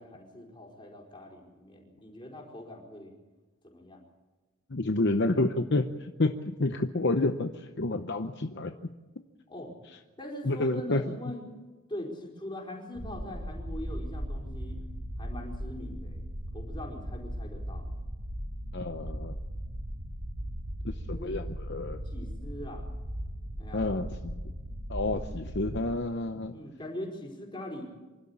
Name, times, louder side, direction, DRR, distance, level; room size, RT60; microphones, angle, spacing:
voice 1, 0.0-3.1 3.6-4.0 9.5-9.7 10.2-11.4 11.9-14.8 15.2-16.2 16.5-17.9 21.1-21.3 22.0-22.9 23.6-23.9 26.5-27.9, left 1 dB, 20° left, -1 dB, 4.8 m, -42 dB
voice 2, 4.7-8.7 10.4-11.0 18.7-19.4 20.8-22.0 23.7-24.4 24.9-26.6, left 2 dB, 50° left, 7 dB, 0.8 m, -29 dB
sound 1, 13.0-25.9, equal, 80° right, 7.6 m, -38 dB
26.5 x 12.5 x 8.7 m, 1.2 s
head